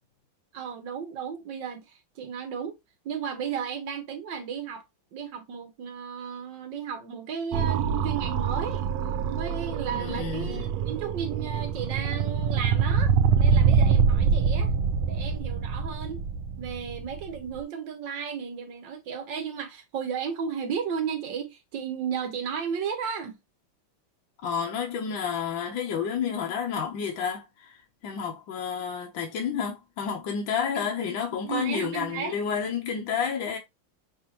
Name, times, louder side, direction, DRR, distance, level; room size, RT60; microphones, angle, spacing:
voice 1, 0.5-2.8 3.0-4.8 5.1-8.9 9.3-14.7 15.0-16.2 16.6-23.4 30.7-30.9 31.4-32.4, right 7 dB, 70° right, 1.5 m, -34 dB
sound 1, 7.5-17.6, right 6 dB, 85° right, 1.4 m, -25 dB
voice 2, 9.9-10.7 24.4-27.8 28.0-33.6, left 7 dB, 70° left, 1.6 m, -30 dB
5.6 x 2.6 x 2.9 m
omnidirectional pair, 2.2 m